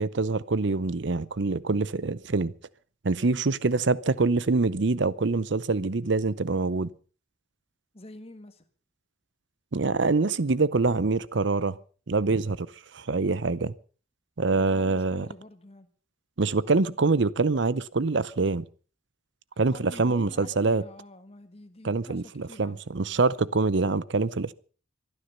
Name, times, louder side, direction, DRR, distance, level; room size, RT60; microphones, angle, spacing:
voice 1, 0.0-2.5 3.0-6.9 9.7-11.8 12.1-12.7 12.9-13.7 14.4-15.3 16.4-18.7 19.6-20.8 21.8-24.5, right 3 dB, 65° right, 0.7 m, -25 dB
voice 2, 7.9-8.6 14.5-15.9 19.7-22.8, left 1 dB, 30° left, 1.6 m, -47 dB
25.0 x 9.9 x 5.5 m
head